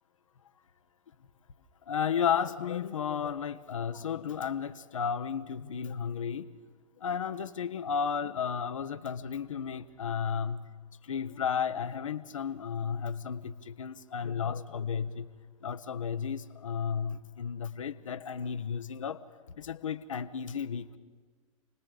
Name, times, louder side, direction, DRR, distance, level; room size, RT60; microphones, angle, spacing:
voice 1, 1.9-6.5 7.0-10.7 11.0-15.3 15.6-19.2 19.6-21.0, left 7 dB, 70° left, 11 dB, 1.0 m, -33 dB
29.0 x 20.0 x 5.0 m, 1.5 s
figure-of-eight pair, 100°, 17 cm